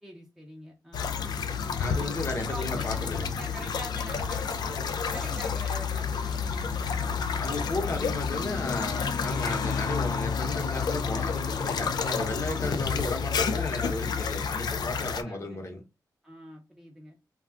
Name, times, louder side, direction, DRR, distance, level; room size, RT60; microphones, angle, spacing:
voice 1, 0.0-1.2 1.8-2.2 2.5-7.2 12.5-12.8 15.1-15.6 16.2-17.2, right 1 dB, 5° right, 0.6 m, -45 dB
sound 1, 0.9-15.2, left 6 dB, 70° left, 0.4 m, -30 dB
voice 2, 1.8-3.3 7.4-15.8, left 2 dB, 40° left, 0.9 m, -34 dB
2.4 x 2.3 x 3.4 m
cardioid pair, 85°, 7 cm